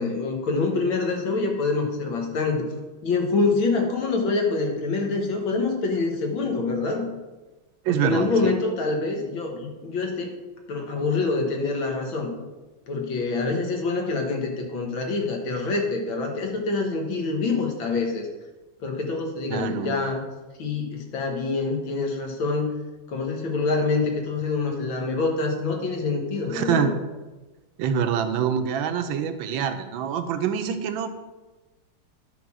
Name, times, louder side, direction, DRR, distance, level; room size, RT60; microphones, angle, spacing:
voice 1, 0.0-2.7 3.0-7.1 7.9-10.3 10.7-12.3 12.9-18.3 18.8-20.2 20.6-22.7 23.1-26.9, left 3 dB, 90° left, 2 dB, 2.1 m, -26 dB
voice 2, 7.8-8.5 19.5-20.0 26.5-26.9 27.8-31.1, right 8 dB, 85° right, 8 dB, 1.5 m, -25 dB
10.0 x 3.9 x 6.1 m, 1.2 s
omnidirectional pair, 2.1 m